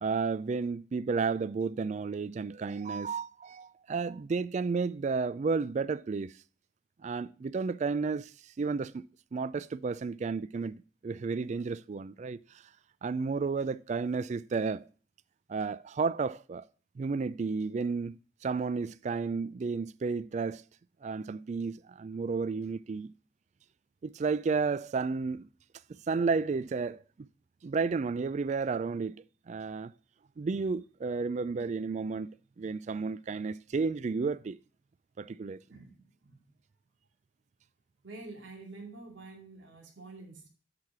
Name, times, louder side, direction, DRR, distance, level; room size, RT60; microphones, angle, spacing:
voice 1, 0.0-6.3 7.0-8.3 8.6-9.1 9.3-12.4 13.0-14.8 15.5-16.7 17.0-20.6 21.0-23.1 24.0-25.4 26.1-27.3 27.6-29.2 29.5-29.9 30.4-32.3 32.6-34.6 35.2-35.6, right 4 dB, 40° right, 0.3 m, -32 dB
voice 2, 35.7-36.5 38.0-40.5, right 3 dB, 85° right, 2.4 m, -48 dB
8.3 x 4.9 x 5.9 m
head